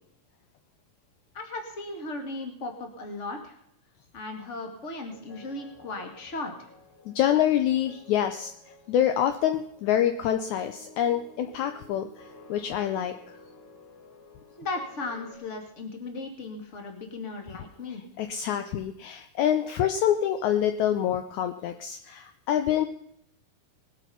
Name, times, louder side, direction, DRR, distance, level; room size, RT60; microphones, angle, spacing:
voice 1, 1.3-3.6 4.1-6.7 14.6-18.0, left 2 dB, 25° left, 4 dB, 1.7 m, -36 dB
sound 1, 5.1-15.3, left 2 dB, 65° left, 3.6 m, -52 dB
voice 2, 7.0-13.1 18.2-22.9, left 10 dB, 80° left, 8 dB, 1.7 m, -26 dB
20.5 x 8.3 x 5.7 m, 0.73 s
omnidirectional pair, 4.2 m